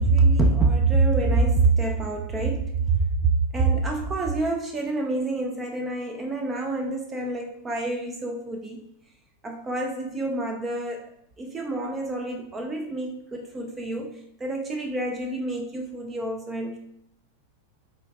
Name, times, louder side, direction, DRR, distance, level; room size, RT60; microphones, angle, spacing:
voice 1, 0.0-8.8 9.4-11.1 11.4-16.8, right 3 dB, 15° right, 2 dB, 0.3 m, -25 dB
3.8 x 2.5 x 2.2 m, 0.74 s
figure-of-eight pair, 90°, 0 cm